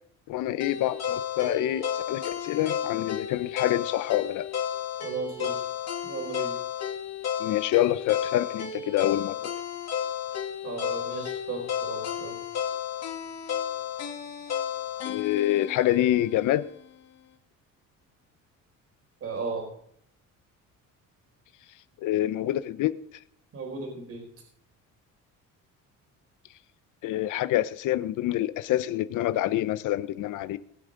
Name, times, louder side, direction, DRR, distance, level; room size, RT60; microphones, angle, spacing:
voice 1, 0.3-4.5 7.4-9.4 15.0-16.7 22.0-23.0 27.0-30.6, left 13 dB, 70° left, 0.7 m, -26 dB
sound 1, 0.6-16.7, left 8 dB, 55° left, 2.7 m, -33 dB
voice 2, 5.0-5.6 6.0-6.5 10.6-12.4 19.2-19.7 23.5-24.3, right 4 dB, 45° right, 4.4 m, -35 dB
20.0 x 7.9 x 3.8 m
cardioid pair, 135°, 32 cm